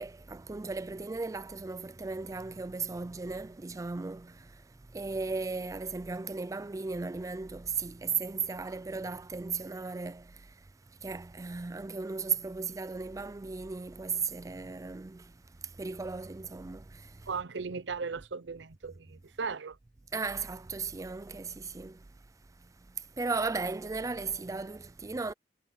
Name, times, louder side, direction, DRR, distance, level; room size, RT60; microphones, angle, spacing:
voice 1, 0.0-17.3 20.1-22.1 22.6-25.3, right 4 dB, 20° right, 0.4 m, -36 dB
voice 2, 17.3-19.8, right 5 dB, 80° right, 0.7 m, -37 dB
head